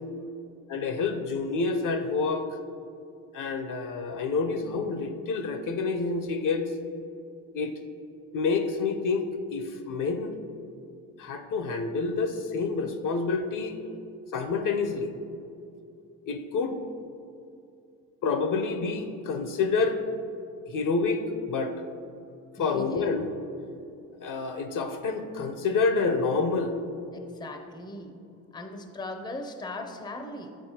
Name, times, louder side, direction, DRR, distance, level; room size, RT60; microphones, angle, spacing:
voice 1, 0.7-2.4 3.3-6.6 7.5-7.7 8.3-10.3 11.2-13.8 14.3-15.1 16.3-16.8 18.2-20.0 20.7-21.7 22.6-23.3 24.2-26.7, left 4 dB, 45° left, 7 dB, 0.6 m, -28 dB
voice 2, 22.6-23.2 27.1-28.2 28.5-30.6, left 2 dB, 10° left, 4 dB, 0.5 m, -39 dB
8.1 x 4.3 x 2.8 m, 2.6 s
hypercardioid pair, 65°, 45 cm